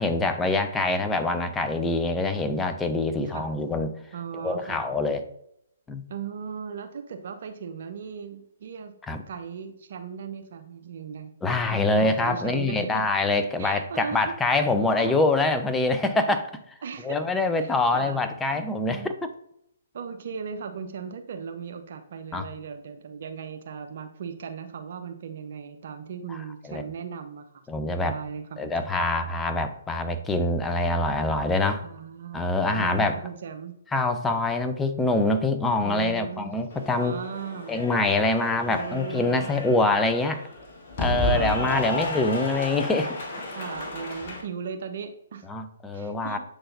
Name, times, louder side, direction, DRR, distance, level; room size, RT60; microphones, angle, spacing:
voice 1, 0.0-3.9 4.3-5.2 5.9-6.1 9.1-9.2 11.4-16.5 17.0-19.1 22.3-22.5 26.7-26.8 27.7-28.2 28.6-31.8 32.3-33.2 33.9-37.2 37.7-40.4 41.0-43.2 45.5-46.4, left 2 dB, 10° left, 7 dB, 0.7 m, -25 dB
voice 2, 4.1-4.8 6.1-8.9 9.3-11.3 11.7-13.0 13.6-14.3 15.0-15.2 16.8-17.2 17.6-18.2 18.5-19.1 19.9-27.6 28.0-28.7 31.8-33.8 35.8-36.5 37.0-37.8 38.7-39.6 41.0-41.9 43.5-45.4 45.9-46.4, right 6 dB, 50° right, 7 dB, 0.9 m, -37 dB
Cheering / Applause, 36.7-44.4, left 1 dB, 45° left, 1.5 m, -32 dB
7.8 x 4.0 x 4.0 m, 0.75 s
figure-of-eight pair, 130°, 0 cm